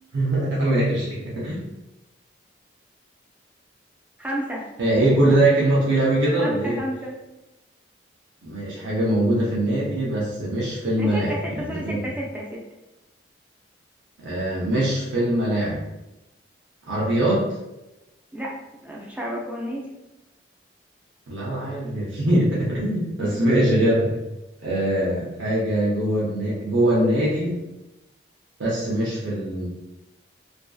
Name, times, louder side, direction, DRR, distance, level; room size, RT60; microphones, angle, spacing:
voice 1, 0.1-1.6 4.8-6.8 8.4-12.1 14.2-15.8 16.9-17.5 21.3-24.1 24.6-27.6 28.6-29.7, right 1 dB, 80° right, -7 dB, 0.6 m, -22 dB
voice 2, 4.2-4.7 6.4-7.1 11.0-12.6 18.3-18.5 18.8-19.9 23.2-23.5, equal, 5° right, -3 dB, 0.4 m, -31 dB
2.5 x 2.3 x 2.3 m, 0.97 s
head